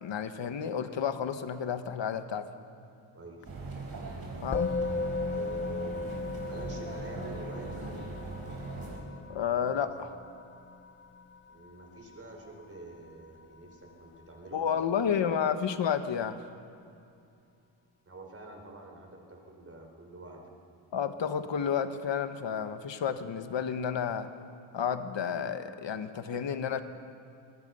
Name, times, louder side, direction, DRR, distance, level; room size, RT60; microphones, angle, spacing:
voice 1, 0.0-2.5 4.4-4.7 9.3-10.2 14.5-16.4 20.9-24.3 24.7-26.8, left 7 dB, 70° left, 9 dB, 1.2 m, -31 dB
voice 2, 3.1-3.8 5.3-6.0 6.4-8.1 11.5-15.4 18.1-20.5, right 2 dB, 30° right, 2 dB, 3.8 m, -47 dB
sound 1, 3.4-9.0, right 3 dB, 50° right, 4.9 m, -40 dB
Musical instrument, 4.5-14.0, left 3 dB, 25° left, 0.6 m, -37 dB
25.5 x 19.0 x 5.5 m, 2.6 s
wide cardioid pair, 110°, 45 cm